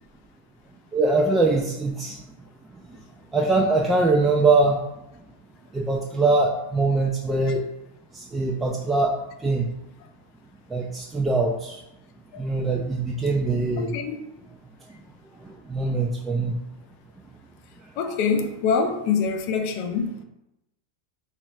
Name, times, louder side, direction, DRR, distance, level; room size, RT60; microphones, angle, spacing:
voice 1, 0.9-2.2 2.7-2.8 3.3-4.8 5.7-7.6 8.1-9.7 10.7-11.8 12.4-13.9 15.4-16.6, right 3 dB, 10° right, 0.3 m, -23 dB
voice 2, 13.8-14.2 18.0-20.2, left 5 dB, 50° left, 0.4 m, -25 dB
3.0 x 2.4 x 4.3 m
supercardioid pair, 135°, 0 cm